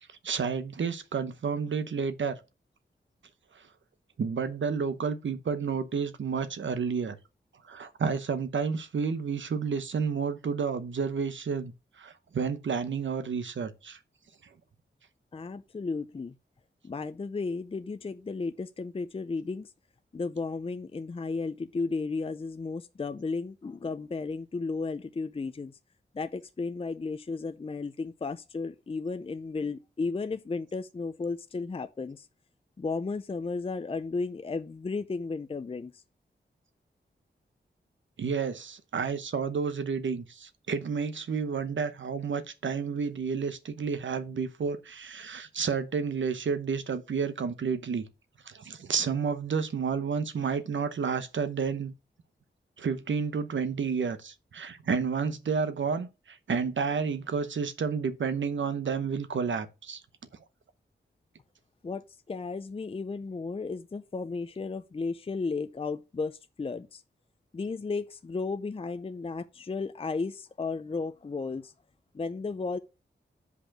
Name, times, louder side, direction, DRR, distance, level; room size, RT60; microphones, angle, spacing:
voice 1, 0.2-2.4 4.2-7.2 7.7-11.7 12.0-14.0 38.2-48.1 48.5-51.9 52.8-60.0, right 5 dB, 80° right, 1.0 m, -30 dB
voice 2, 15.3-16.3 16.8-19.7 20.1-25.7 26.1-32.3 32.8-36.0 61.8-67.0 67.5-71.7 72.1-72.8, left 4 dB, 30° left, 0.5 m, -34 dB
6.6 x 5.2 x 5.9 m
wide cardioid pair, 105°, 19 cm